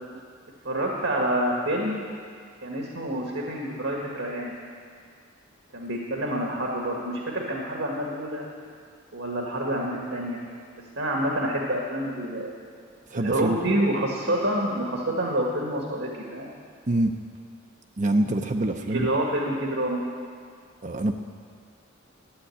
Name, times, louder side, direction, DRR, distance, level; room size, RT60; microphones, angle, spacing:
voice 1, 0.7-2.0 2.6-4.6 5.7-8.4 9.1-10.4 11.0-12.6 13.1-16.5 18.9-20.0, right 1 dB, 75° right, -1 dB, 1.7 m, -27 dB
voice 2, 13.1-13.6 16.9-17.2 18.0-19.1 20.8-21.1, right 1 dB, 35° right, 4 dB, 0.6 m, -25 dB
13.0 x 8.1 x 9.8 m, 2.1 s
head